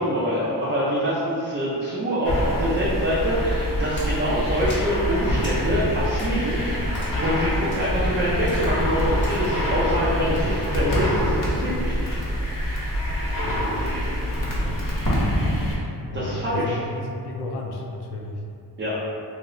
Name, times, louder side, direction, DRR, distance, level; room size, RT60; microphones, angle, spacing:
voice 1, 0.0-12.2 16.1-16.8 18.8-19.0, equal, 30° right, -8 dB, 0.5 m, -25 dB
sound 1, 2.2-15.8, equal, 55° left, 0.9 m, -25 dB
Splash splatter, 4.0-9.5, left 1 dB, 30° left, 1.0 m, -42 dB
voice 2, 14.3-15.3 16.1-18.4, left 2 dB, 75° left, 1 dB, 0.5 m, -33 dB
2.8 x 2.6 x 3.1 m, 2.5 s
wide cardioid pair, 135°, 40 cm